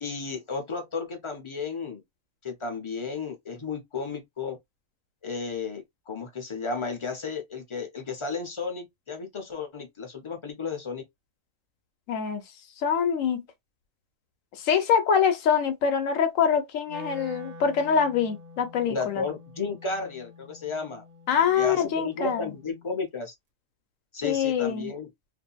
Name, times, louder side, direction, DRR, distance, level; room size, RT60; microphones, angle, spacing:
voice 1, 0.0-2.0 2.4-4.6 5.2-11.0 18.9-21.0 21.6-23.3 24.1-25.1, left 4 dB, 45° left, 0.4 m, -33 dB
voice 2, 12.1-12.4 12.8-13.4 14.6-19.2 21.3-22.5 24.2-24.9, left 7 dB, 85° left, 1.1 m, -24 dB
Wind instrument woodwind instrument, 16.9-23.0, left 1 dB, 60° right, 0.7 m, -47 dB
2.7 x 2.4 x 2.2 m
omnidirectional pair, 1.4 m